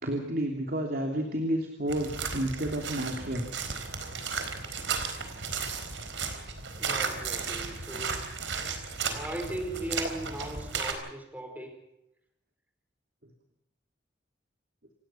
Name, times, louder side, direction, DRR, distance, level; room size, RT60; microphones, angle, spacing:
voice 1, 0.0-3.5 3.8-4.0, right 1 dB, 55° right, 3 dB, 3.1 m, -31 dB
sound 1, 1.9-10.9, right 5 dB, 90° right, 4.3 m, -34 dB
voice 2, 6.7-8.3 9.0-11.8, right 1 dB, 10° right, 5 dB, 4.9 m, -38 dB
29.0 x 18.0 x 5.9 m, 0.84 s
head